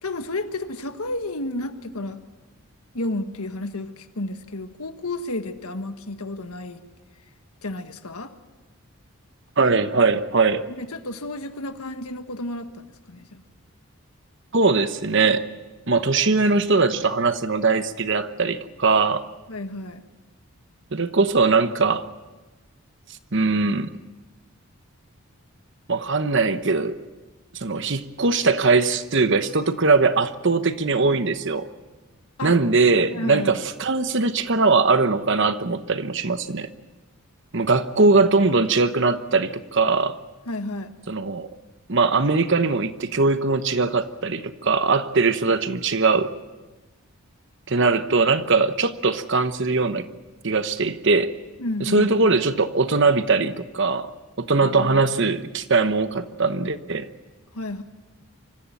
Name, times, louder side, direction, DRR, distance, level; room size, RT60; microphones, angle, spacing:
voice 1, 0.0-2.2 2.9-6.8 7.6-8.3 10.7-13.4 19.5-20.0 32.4-32.6 33.1-33.6 40.5-40.9 51.6-52.1 54.6-55.0 57.5-57.8, left 2 dB, 80° left, 8 dB, 1.5 m, -31 dB
voice 2, 9.6-10.7 14.5-15.4 15.9-19.2 20.9-22.1 23.3-23.9 25.9-27.0 27.5-31.7 32.4-36.7 37.5-40.2 41.1-41.5 41.9-46.3 47.7-50.1 50.4-51.3 51.8-54.1 54.4-57.1, right 4 dB, 55° right, 11 dB, 1.1 m, -21 dB
25.5 x 15.0 x 9.0 m, 1.2 s
head